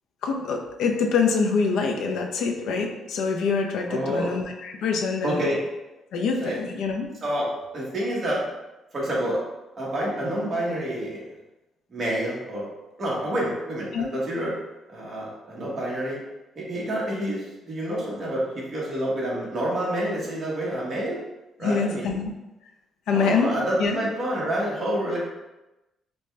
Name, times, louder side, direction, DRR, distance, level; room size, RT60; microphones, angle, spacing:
voice 1, 0.2-5.4 6.1-7.1 13.9-14.1 21.6-22.3 23.1-24.0, left 5 dB, 80° left, 2 dB, 0.5 m, -25 dB
voice 2, 3.9-4.3 5.2-5.6 6.4-6.6 7.2-8.4 8.9-9.4 9.8-11.2 11.9-12.7 13.0-14.6 14.9-16.2 16.6-21.2 21.6-22.2 23.1-25.2, right 1 dB, 30° right, -5 dB, 1.2 m, -28 dB
5.2 x 2.2 x 3.2 m, 1.0 s
cardioid pair, 160°, 0 cm